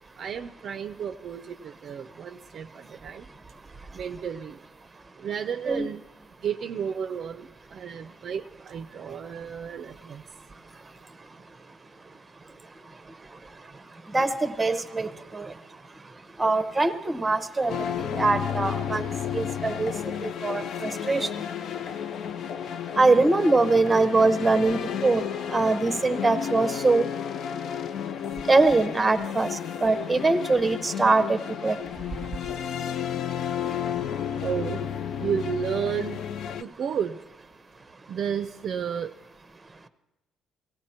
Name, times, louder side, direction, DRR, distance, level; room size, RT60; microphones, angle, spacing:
voice 1, 0.2-3.2 3.9-4.6 5.2-6.0 6.4-10.2 34.4-34.9 35.2-36.2 36.6-37.2 38.1-39.1, right 7 dB, 45° right, 10 dB, 0.5 m, -32 dB
voice 2, 14.1-15.1 15.3-15.5 16.4-17.7 18.2-19.0 19.3-19.9 20.4-21.3 23.0-25.2 25.5-27.0 28.5-29.5 29.8-31.4 31.6-31.8, right 3 dB, 10° right, 13 dB, 0.7 m, -22 dB
sound 1, 17.7-36.6, left 9 dB, 50° left, 0.4 m, -32 dB
18.5 x 16.5 x 4.3 m, 1.0 s
cardioid pair, 150°, 0 cm